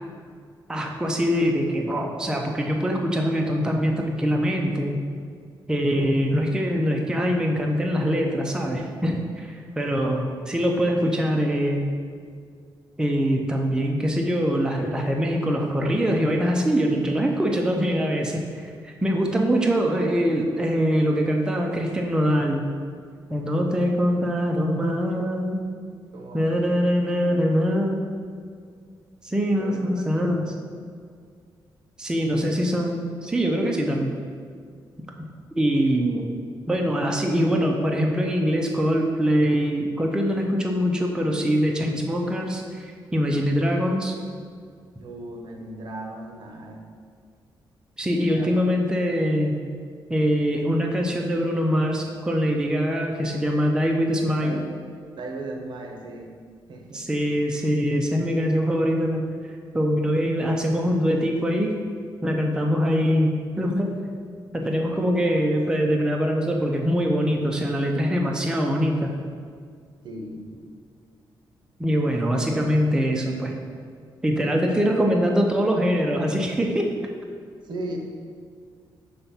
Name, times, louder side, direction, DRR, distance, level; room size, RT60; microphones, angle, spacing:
voice 1, 0.7-5.0 5.7-11.8 13.0-22.6 23.3-25.6 26.3-28.0 29.2-30.4 32.0-34.1 35.6-36.3 36.7-44.1 48.0-49.6 50.1-54.6 56.9-59.2 59.7-61.7 62.2-64.0 64.5-69.1 71.8-73.5 74.2-76.9, equal, 10° right, 1 dB, 0.5 m, -23 dB
voice 2, 26.1-26.9 27.2-27.5 29.6-30.5 45.0-46.9 48.4-48.5 54.4-54.8 55.2-56.3 56.7-57.1 70.0-70.5 77.6-78.0, right 2 dB, 65° right, 2 dB, 0.8 m, -37 dB
5.7 x 3.4 x 5.5 m, 2.1 s
cardioid pair, 125°, 9 cm